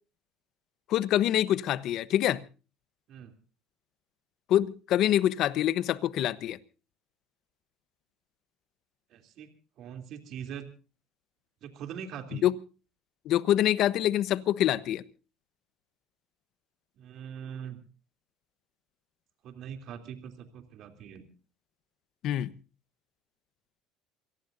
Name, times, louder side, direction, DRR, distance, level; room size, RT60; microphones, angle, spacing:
voice 1, 0.9-2.4 4.5-6.6 12.4-12.5 13.2-15.0 22.2-22.5, left 12 dB, 60° left, 1.0 m, -25 dB
voice 2, 9.1-9.5 9.8-10.7 11.6-12.5 17.0-17.8 19.4-21.3, right 8 dB, 55° right, 3.1 m, -42 dB
28.0 x 18.0 x 2.7 m
supercardioid pair, 105°, 0 cm